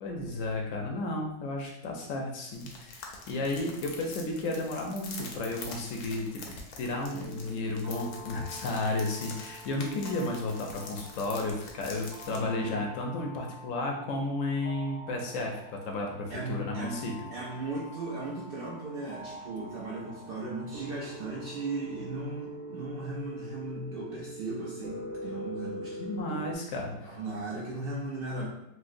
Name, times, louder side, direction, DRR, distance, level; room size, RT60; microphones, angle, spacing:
voice 1, 0.0-15.5 15.8-17.1 26.0-27.1, left 2 dB, 70° left, 1 dB, 0.8 m, -33 dB
sound 1, 2.5-12.4, left 4 dB, 85° left, 1.2 m, -45 dB
sound 2, 7.1-26.5, equal, 60° right, 1.0 m, -45 dB
voice 2, 12.3-12.8 16.3-17.0 17.3-26.0 26.3-26.5 27.0-28.5, right 2 dB, 80° right, -5 dB, 0.5 m, -37 dB
4.4 x 2.0 x 2.5 m, 0.81 s
omnidirectional pair, 1.6 m